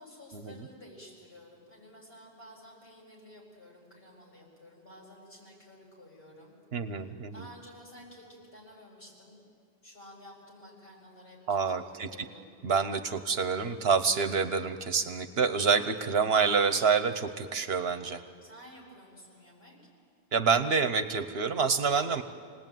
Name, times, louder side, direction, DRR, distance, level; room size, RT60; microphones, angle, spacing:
voice 1, 0.0-6.5 6.9-9.4 9.8-12.5 18.4-19.8, equal, 70° left, -2 dB, 7.2 m, -52 dB
voice 2, 6.7-7.5 11.5-12.1 12.6-18.2 20.3-22.2, right 5 dB, 75° right, 10 dB, 1.2 m, -27 dB
29.0 x 19.0 x 9.2 m, 2.1 s
omnidirectional pair, 1.0 m